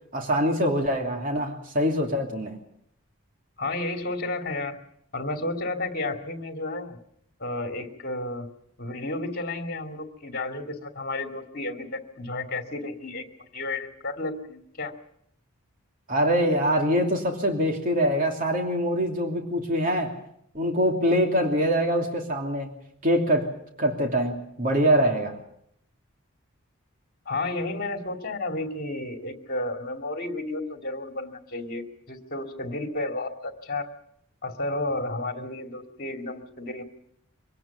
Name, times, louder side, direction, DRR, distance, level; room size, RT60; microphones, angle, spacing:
voice 1, 0.1-2.6 16.1-20.1 20.5-22.7 23.0-23.5 23.8-25.4, equal, 40° right, 2 dB, 2.9 m, -24 dB
voice 2, 3.6-4.8 5.1-7.0 7.4-8.5 8.8-14.9 27.3-33.9 34.4-36.8, left 2 dB, 45° left, 4 dB, 2.6 m, -32 dB
24.5 x 18.0 x 7.2 m, 0.73 s
head